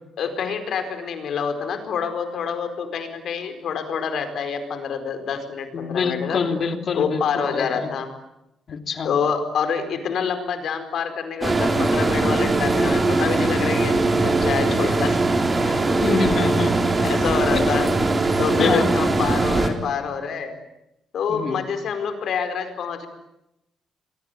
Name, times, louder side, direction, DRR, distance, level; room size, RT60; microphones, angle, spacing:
voice 1, 0.2-6.4 6.9-8.1 9.0-15.2 15.6-15.8 16.1-16.2 17.0-17.9 18.4-20.5 21.1-23.1, left 6 dB, 65° left, 8 dB, 4.7 m, -27 dB
voice 2, 5.7-7.9 8.7-9.1 16.0-16.7 17.5-17.7 18.6-18.9 21.3-21.6, left 5 dB, 50° left, 6 dB, 3.2 m, -26 dB
sound 1, 11.4-19.7, right 2 dB, 25° right, 4.1 m, -20 dB
27.5 x 22.5 x 9.5 m, 0.87 s
cardioid pair, 120°, 0 cm